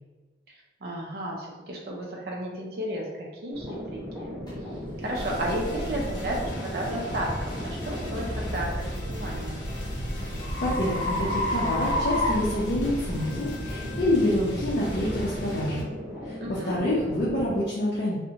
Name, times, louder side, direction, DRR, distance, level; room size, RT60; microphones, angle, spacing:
voice 1, 0.8-4.4 5.0-7.3 7.6-9.6 16.4-16.8, right 1 dB, 55° right, -2 dB, 0.5 m, -33 dB
sound 1, 3.5-17.6, equal, 5° right, 0.9 m, -36 dB
sound 2, 4.5-4.6 5.1-5.3 5.9-6.1 8.8-13.3, left 1 dB, 20° left, 0.7 m, -31 dB
sound 3, 5.1-15.8, equal, 85° left, 0.8 m, -35 dB
voice 2, 10.3-15.8 16.2-18.2, left 1 dB, 55° left, -7 dB, 0.5 m, -27 dB
2.6 x 2.1 x 2.8 m, 1.3 s
head